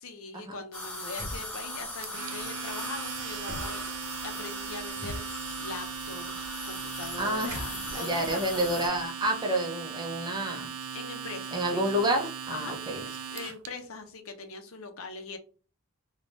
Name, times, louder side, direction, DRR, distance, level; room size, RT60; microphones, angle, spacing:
voice 1, 0.0-3.8 4.2-8.9 10.9-11.9 12.5-15.4, left 3 dB, 70° left, 6 dB, 0.6 m, -42 dB
sound 1, 0.7-8.9, left 1 dB, 5° left, 1.3 m, -39 dB
sound 2, 1.2-1.6 3.5-4.0 5.0-5.6 7.3-9.3, equal, 40° right, 1.0 m, -42 dB
Domestic sounds home sounds, 2.0-13.7, right 7 dB, 80° right, 0.4 m, -39 dB
voice 2, 7.2-7.6 7.9-10.7 11.5-13.0, right 1 dB, 20° right, 2 dB, 0.5 m, -29 dB
3.3 x 2.2 x 2.6 m, 0.37 s
head